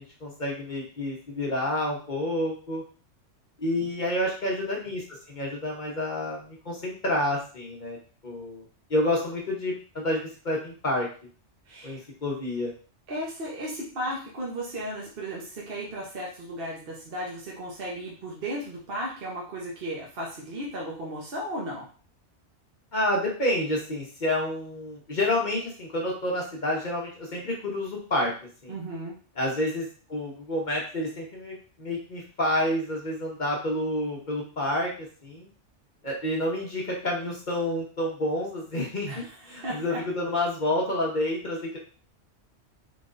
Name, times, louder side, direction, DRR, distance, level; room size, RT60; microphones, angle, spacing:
voice 1, 0.0-2.8 3.6-8.0 8.2-8.6 8.9-11.1 11.8-12.7 22.9-28.3 28.6-28.7 29.4-35.5 36.0-41.8, left 1 dB, 45° left, -3 dB, 1.0 m, -29 dB
voice 2, 11.7-12.0 13.1-21.9 28.7-29.1 39.1-40.0, right 1 dB, 55° right, -4 dB, 1.1 m, -35 dB
3.9 x 3.3 x 2.5 m, 0.39 s
omnidirectional pair, 1.2 m